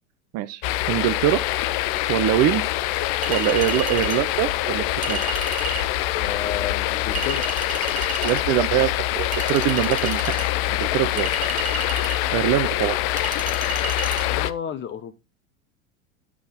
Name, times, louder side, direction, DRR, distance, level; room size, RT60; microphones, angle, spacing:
sound 1, 0.6-14.5, left 15 dB, 45° left, 0.6 m, -25 dB
voice 1, 0.9-1.4 2.1-2.6 3.3-5.2 8.2-11.3 12.3-13.0, right 14 dB, 40° right, 0.7 m, -23 dB
Chink clink, 3.2-4.2 5.0-5.9 7.1-8.4 9.3-10.5 11.2-12.2 13.2-14.2, right 7 dB, 20° right, 1.0 m, -32 dB
voice 2, 6.2-7.4 14.3-15.1, left 8 dB, 30° left, 1.0 m, -31 dB
9.6 x 6.2 x 3.6 m
hypercardioid pair, 95°, 40 cm